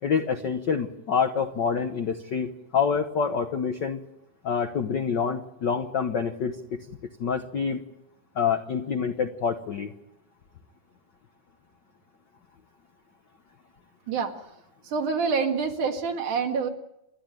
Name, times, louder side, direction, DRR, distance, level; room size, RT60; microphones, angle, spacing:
voice 1, 0.0-4.0 4.4-6.8 7.2-7.8 8.3-9.9, left 6 dB, 70° left, 6 dB, 1.0 m, -27 dB
voice 2, 14.1-14.5 14.8-16.7, right 5 dB, 75° right, 4 dB, 3.4 m, -27 dB
29.0 x 11.5 x 9.1 m, 0.86 s
omnidirectional pair, 3.6 m